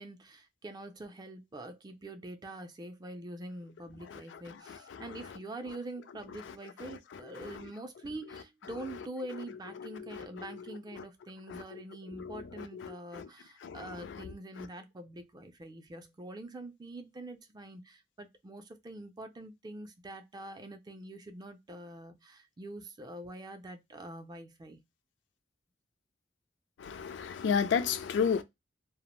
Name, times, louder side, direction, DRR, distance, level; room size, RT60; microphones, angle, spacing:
voice 1, 0.0-24.8, right 1 dB, 20° right, 0.3 m, -45 dB
voice 2, 4.1-5.3 6.4-7.7 8.3-8.4 9.8-11.0 11.5-11.8 12.1-13.3 13.6-14.7 26.8-28.4, left 6 dB, 65° left, 0.3 m, -35 dB
2.4 x 2.0 x 2.9 m
head